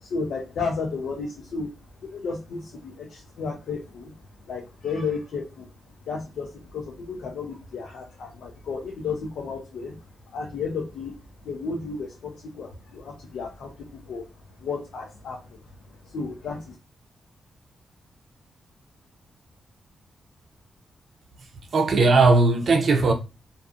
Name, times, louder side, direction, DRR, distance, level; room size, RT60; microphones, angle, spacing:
voice 1, 0.0-1.7 2.0-4.2 4.5-5.7 6.0-10.0 10.3-11.2 11.4-14.2 14.6-15.6 16.0-16.7, left 4 dB, 80° left, 0.5 m, -33 dB
voice 2, 21.7-23.1, right 3 dB, 65° right, 0.5 m, -18 dB
2.5 x 2.4 x 2.4 m
cardioid pair, 75°, 0 cm